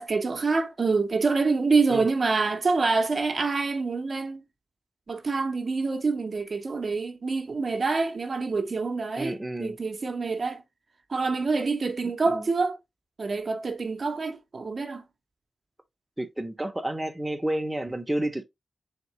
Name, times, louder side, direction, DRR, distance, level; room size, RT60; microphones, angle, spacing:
voice 1, 0.0-4.4 5.1-10.6 11.1-12.8 13.2-15.0, right 4 dB, 50° right, 0.6 m, -26 dB
voice 2, 9.2-9.8 12.3-12.5 16.2-18.4, right 1 dB, 10° right, 0.6 m, -30 dB
3.6 x 3.6 x 3.0 m
wide cardioid pair, 90°, 0 cm